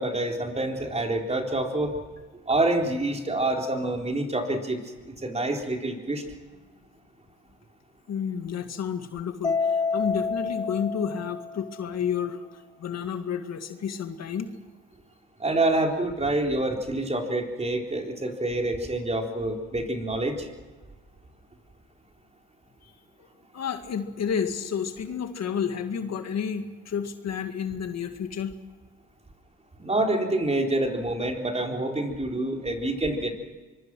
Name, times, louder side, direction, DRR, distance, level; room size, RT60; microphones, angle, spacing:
voice 1, 0.0-2.0 2.5-4.8 5.1-6.2 15.4-20.5 29.8-33.3, right 2 dB, 20° right, 2 dB, 3.9 m, -27 dB
voice 2, 8.1-12.4 12.8-14.5 23.5-28.6, left 7 dB, 60° left, 7 dB, 2.0 m, -30 dB
Mallet percussion, 9.4-11.9, left 4 dB, 15° left, 1.2 m, -28 dB
24.5 x 22.5 x 6.2 m, 1.3 s
cardioid pair, 90°, 30 cm